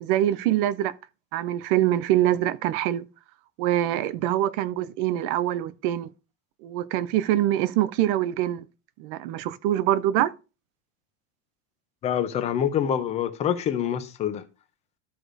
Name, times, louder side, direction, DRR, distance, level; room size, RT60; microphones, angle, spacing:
voice 1, 0.0-0.9 1.3-3.0 3.6-6.1 6.6-8.7 9.0-10.3, right 13 dB, 45° right, 0.5 m, -24 dB
voice 2, 12.0-14.4, left 9 dB, 15° left, 0.5 m, -26 dB
14.0 x 4.8 x 2.5 m
supercardioid pair, 170°, 39 cm